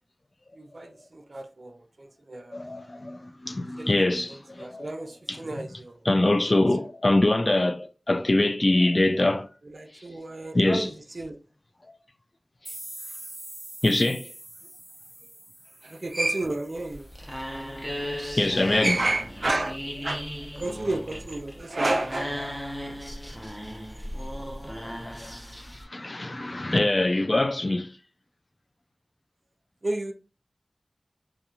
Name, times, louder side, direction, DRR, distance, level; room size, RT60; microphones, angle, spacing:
voice 1, 0.6-2.6 3.8-3.9 4.3-6.0 9.6-11.3 15.8-17.1 18.2-18.3 18.7-19.8 20.0-20.2 20.6-22.3 29.8-30.1, right 2 dB, 60° right, 0.3 m, -31 dB
voice 2, 2.5-4.9 5.3-5.4 6.1-9.5 10.5-10.9 13.8-14.3 18.4-18.9 24.8-25.3 25.6-27.9, left 2 dB, 45° left, 0.3 m, -24 dB
sound 1, 12.6-17.3, right 1 dB, 40° right, 0.9 m, -44 dB
sound 2, 16.7-25.8, equal, 5° left, 0.7 m, -36 dB
2.9 x 2.4 x 2.3 m
wide cardioid pair, 65°, 0 cm